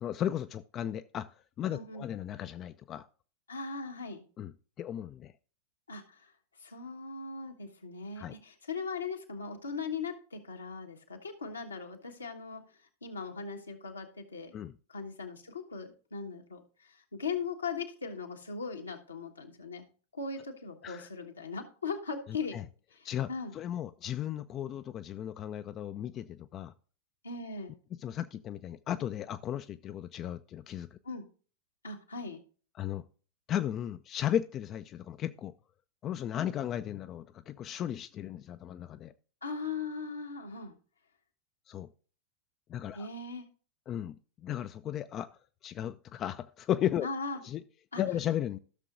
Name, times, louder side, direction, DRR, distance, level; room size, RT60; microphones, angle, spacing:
voice 1, 0.0-3.1 4.4-5.3 8.2-8.3 14.5-14.7 20.8-21.1 22.5-22.6 23.0-26.7 27.9-31.0 32.8-33.0 33.5-35.5 36.0-39.1 41.7-41.9 42.7-43.1 43.9-45.3 45.6-47.1 47.4-47.6 48.0-48.6, left 11 dB, 30° left, 11 dB, 0.4 m, -35 dB
voice 2, 1.7-2.1 3.5-4.2 5.9-6.3 6.6-12.6 13.0-14.5 14.9-19.8 20.1-22.6 22.9-23.5 24.6-24.7 27.2-27.7 31.0-31.2 31.8-32.4 39.4-40.7 42.9-43.4 47.0-47.4 47.9-48.0, left 4 dB, 75° left, 3 dB, 1.3 m, -39 dB
15.0 x 6.5 x 2.5 m, 0.39 s
figure-of-eight pair, 90°, 0 cm